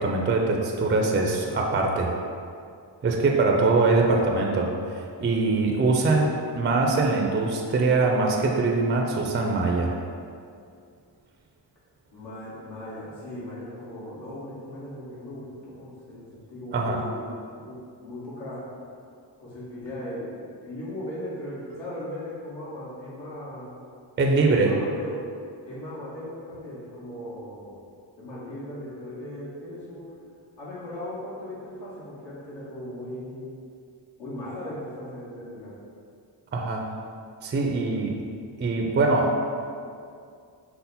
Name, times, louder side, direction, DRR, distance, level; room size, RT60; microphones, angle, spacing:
voice 1, 0.0-2.1 3.0-9.9 16.7-17.0 24.2-24.7 36.5-36.9 37.4-38.2 38.6-39.4, right 3 dB, 25° right, 1 dB, 0.4 m, -23 dB
voice 2, 4.0-4.4 12.1-18.6 19.4-23.7 24.5-25.3 25.6-27.8 28.2-30.0 30.6-33.5 34.2-35.7, left 1 dB, 75° left, -9 dB, 1.5 m, -38 dB
5.5 x 2.1 x 4.1 m, 2.3 s
cardioid pair, 100°, 44 cm